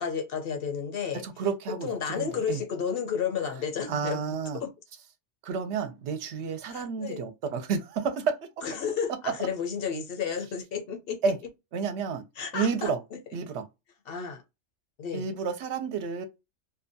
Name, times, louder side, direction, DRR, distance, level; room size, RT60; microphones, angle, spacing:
voice 1, 0.0-1.2 1.8-4.7 6.7-7.2 8.6-11.2 12.4-13.2 14.1-14.4 15.0-15.3, left 6 dB, 60° left, 0.8 m, -32 dB
voice 2, 1.2-1.9 2.2-2.6 3.9-4.6 5.4-8.5 11.2-11.4 11.7-12.2 12.5-13.0 13.3-13.6 15.1-16.2, right 5 dB, 70° right, 0.8 m, -30 dB
2.7 x 2.2 x 2.6 m
omnidirectional pair, 1.3 m